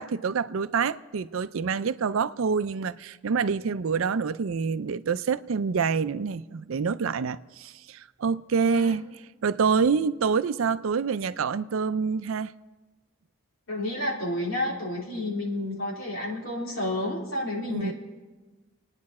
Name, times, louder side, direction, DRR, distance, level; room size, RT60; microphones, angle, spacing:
voice 1, 0.0-9.1 9.4-12.5 17.7-17.9, right 5 dB, 70° right, 0.4 m, -27 dB
voice 2, 8.6-9.0 13.7-17.9, left 1 dB, 65° left, 3.6 m, -30 dB
28.5 x 9.7 x 4.2 m
head